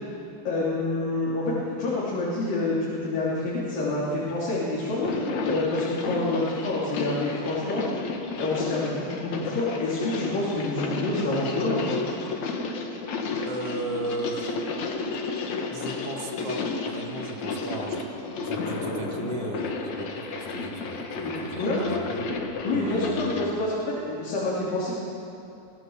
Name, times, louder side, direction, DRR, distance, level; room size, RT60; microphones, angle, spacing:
voice 1, 0.4-5.0 5.5-7.8 8.3-12.0 21.2-22.0 22.6-24.9, left 2 dB, 80° left, -7 dB, 5.0 m, -27 dB
sound 1, 4.9-23.5, left 3 dB, 60° left, 2.8 m, -32 dB
voice 2, 13.5-14.6 15.7-18.1 18.4-22.3 22.7-23.4, right 2 dB, 50° right, 1 dB, 2.7 m, -35 dB
25.5 x 16.5 x 7.3 m, 2.7 s
omnidirectional pair, 3.9 m